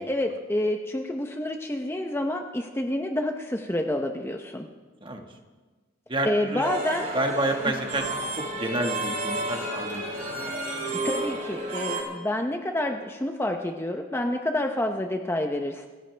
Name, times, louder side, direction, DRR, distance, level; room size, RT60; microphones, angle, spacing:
voice 1, 0.0-4.7 6.2-7.1 11.0-15.9, left 1 dB, 10° left, 3 dB, 0.8 m, -28 dB
voice 2, 6.1-6.7 7.1-8.1 8.3-10.4, right 1 dB, 25° right, 3 dB, 1.6 m, -29 dB
sound 1, 6.6-12.0, right 1 dB, 45° right, 6.0 m, -31 dB
27.5 x 15.5 x 3.4 m, 1.3 s
head